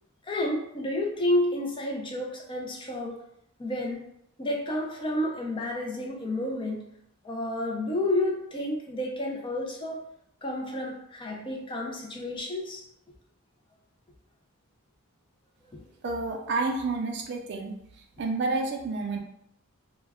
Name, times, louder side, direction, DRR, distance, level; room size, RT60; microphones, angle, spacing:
voice 1, 0.3-3.2 3.6-4.0 4.4-6.8 7.2-10.0 10.4-12.8 15.7-15.8, left 1 dB, 20° left, 0 dB, 0.4 m, -30 dB
voice 2, 16.0-17.7 18.2-19.2, right 3 dB, 50° right, 3 dB, 0.4 m, -29 dB
2.2 x 2.2 x 3.4 m, 0.77 s
head